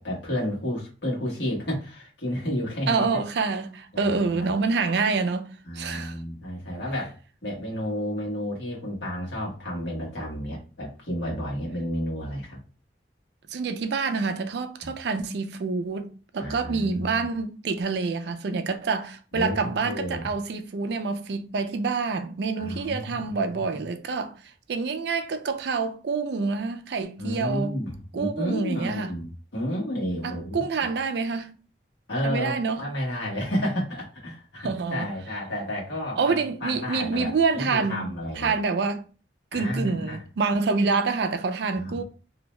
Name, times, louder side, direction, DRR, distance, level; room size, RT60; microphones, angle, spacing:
voice 1, 0.0-3.0 3.9-4.5 5.7-12.6 14.8-14.9 16.4-17.0 19.3-20.3 22.6-23.8 27.2-30.6 32.1-38.5 39.5-40.2 41.7-42.0, equal, 75° left, 1.2 m, -31 dB
voice 2, 2.9-5.5 5.7-6.2 13.5-16.1 16.3-24.3 24.7-27.8 28.1-29.1 30.2-31.5 32.2-32.8 34.6-35.1 36.2-38.0 38.3-39.1 39.5-42.0, right 4 dB, 65° right, 0.4 m, -27 dB
2.6 x 2.1 x 3.0 m
head